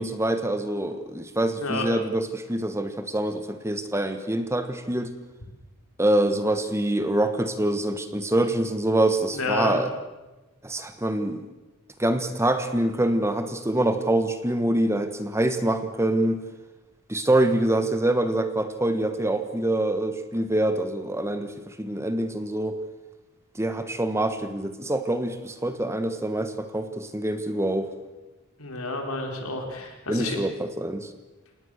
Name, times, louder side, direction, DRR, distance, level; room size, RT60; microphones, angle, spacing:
voice 1, 0.0-5.1 6.0-9.9 10.6-11.5 12.0-16.4 17.1-22.8 23.5-27.9 30.1-31.1, right 1 dB, 10° right, 9 dB, 1.2 m, -25 dB
voice 2, 9.3-9.8 28.6-30.4, left 3 dB, 75° left, 3 dB, 4.4 m, -30 dB
27.0 x 19.5 x 6.5 m, 1.1 s
head